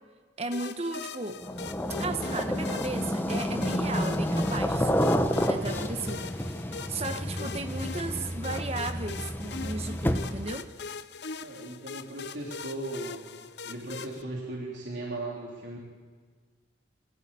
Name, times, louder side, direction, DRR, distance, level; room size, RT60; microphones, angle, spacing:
voice 1, 0.4-1.4 2.0-5.0 5.3-10.7, right 2 dB, 35° right, 7 dB, 1.1 m, -35 dB
sound 1, 0.5-14.2, left 5 dB, 65° left, 0.7 m, -41 dB
sound 2, 1.4-10.5, equal, 10° left, 1.0 m, -30 dB
voice 2, 11.4-13.2 13.6-15.8, right 2 dB, 80° right, -3 dB, 3.5 m, -37 dB
22.0 x 16.0 x 9.0 m, 1.5 s
head